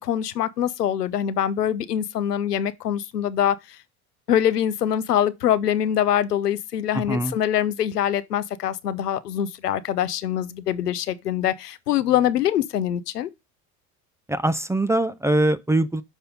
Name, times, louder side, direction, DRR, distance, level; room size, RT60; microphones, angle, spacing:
voice 1, 0.0-3.8 4.3-13.3, left 10 dB, 85° left, 0.6 m, -24 dB
voice 2, 14.3-16.0, right 1 dB, 5° right, 0.5 m, -22 dB
6.0 x 5.5 x 5.2 m
figure-of-eight pair, 60°, 46 cm